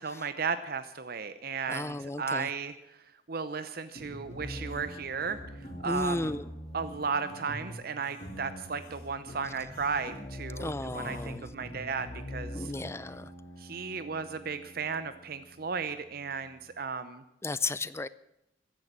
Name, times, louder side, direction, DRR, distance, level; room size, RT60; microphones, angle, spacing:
voice 1, 0.0-2.8 3.3-5.4 5.8-6.3 6.7-12.7 13.6-17.2, right 5 dB, 55° right, 12 dB, 0.8 m, -35 dB
voice 2, 1.7-2.5 5.8-6.4 10.6-11.4 12.5-13.3 17.4-18.1, left 2 dB, 15° left, 17 dB, 0.5 m, -34 dB
sound 1, 4.0-16.8, equal, 35° left, 3.2 m, -44 dB
sound 2, 4.6-5.8 6.2-6.5 6.9-7.5 7.9-8.4 8.8-9.1 9.7-10.2 10.8-11.5, left 4 dB, 55° left, 2.8 m, -52 dB
15.0 x 11.0 x 7.4 m, 0.82 s
head